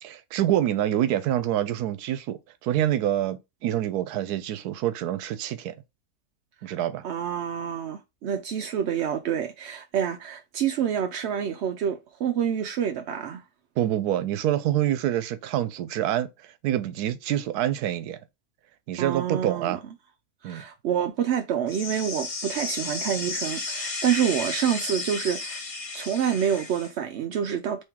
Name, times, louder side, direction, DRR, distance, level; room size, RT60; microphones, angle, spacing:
voice 1, 0.0-5.7 6.6-7.0 13.8-16.3 16.6-18.2 18.9-19.8 20.4-20.6, right 12 dB, 90° right, 1.1 m, -26 dB
voice 2, 7.0-13.4 19.0-19.8 20.4-25.6 25.9-27.8, right 8 dB, 70° right, 0.6 m, -27 dB
sound 1, 21.7-26.9, left 3 dB, 35° left, 0.5 m, -33 dB
3.6 x 3.2 x 4.5 m
omnidirectional pair, 1.6 m